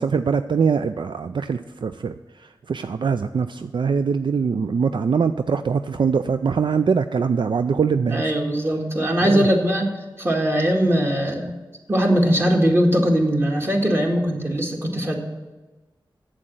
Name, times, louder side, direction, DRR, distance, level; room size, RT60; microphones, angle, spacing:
voice 1, 0.0-8.2 9.2-9.5, right 5 dB, 70° right, 9 dB, 0.3 m, -23 dB
voice 2, 8.1-9.9 10.2-11.6 11.9-15.2, equal, 30° right, 0 dB, 1.9 m, -20 dB
8.1 x 7.7 x 7.7 m, 1.2 s
wide cardioid pair, 60°, 8 cm